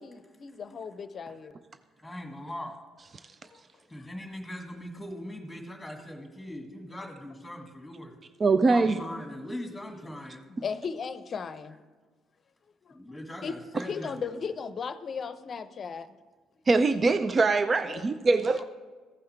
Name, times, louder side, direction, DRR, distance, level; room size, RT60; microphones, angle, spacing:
voice 1, 0.0-1.6 3.5-3.6 10.5-11.8 12.8-13.0 13.4-13.5 13.9-16.2 17.9-18.0 18.5-18.6, left 6 dB, 45° left, 12 dB, 0.6 m, -36 dB
voice 2, 2.0-2.8 3.9-8.1 8.7-10.4 12.9-14.3, left 1 dB, 5° left, 2 dB, 1.8 m, -40 dB
voice 3, 8.4-9.0 16.7-18.6, right 3 dB, 35° right, 11 dB, 0.4 m, -23 dB
15.0 x 5.6 x 3.4 m, 1.4 s
supercardioid pair, 65°, 0 cm